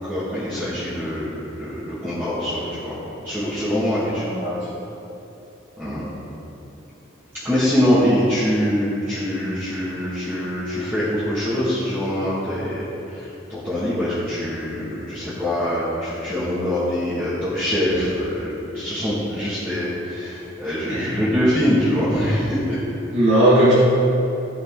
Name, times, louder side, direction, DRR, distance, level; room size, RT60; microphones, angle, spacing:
voice 1, 0.0-2.9 3.2-4.2 5.8-6.0 7.4-22.8, equal, 10° right, -14 dB, 2.0 m, -24 dB
voice 2, 4.3-4.6 20.9-21.1 23.1-23.7, right 1 dB, 75° right, -9 dB, 2.1 m, -17 dB
15.5 x 5.4 x 3.8 m, 2.9 s
head